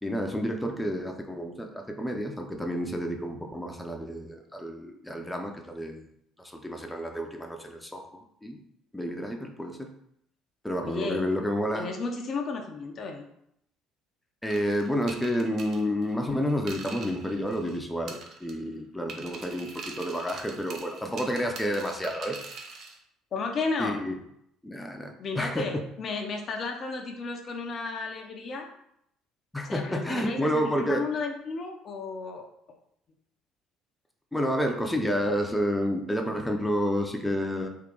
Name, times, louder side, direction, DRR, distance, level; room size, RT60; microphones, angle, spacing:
voice 1, 0.0-6.1 6.4-8.6 8.9-9.9 10.6-11.9 14.4-22.4 23.8-24.1 24.6-25.8 29.5-31.0 34.3-37.7, equal, 10° left, 3 dB, 0.6 m, -30 dB
voice 2, 10.8-11.2 11.7-13.3 23.3-24.0 25.2-28.7 29.7-32.4, left 4 dB, 45° left, 3 dB, 0.6 m, -33 dB
sound 1, 14.5-17.8 18.1-18.7 19.1-23.0, right 4 dB, 55° right, 0.7 m, -43 dB
3.7 x 2.7 x 3.7 m, 0.74 s
figure-of-eight pair, 55°, 0 cm